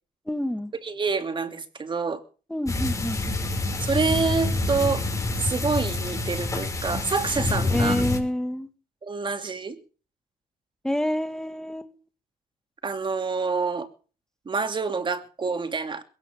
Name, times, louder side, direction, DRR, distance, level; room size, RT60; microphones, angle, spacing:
voice 1, 0.3-0.7 2.5-3.4 7.7-8.7 10.8-11.9, left 1 dB, 5° left, 1.9 m, -28 dB
voice 2, 0.8-2.2 3.8-5.0 5.4-8.1 9.0-9.8 12.8-13.9 14.5-16.0, right 4 dB, 30° right, 2.8 m, -27 dB
sound 1, 2.6-8.2, left 2 dB, 20° left, 6.1 m, -27 dB
21.5 x 17.5 x 3.7 m
cardioid pair, 110°, 17 cm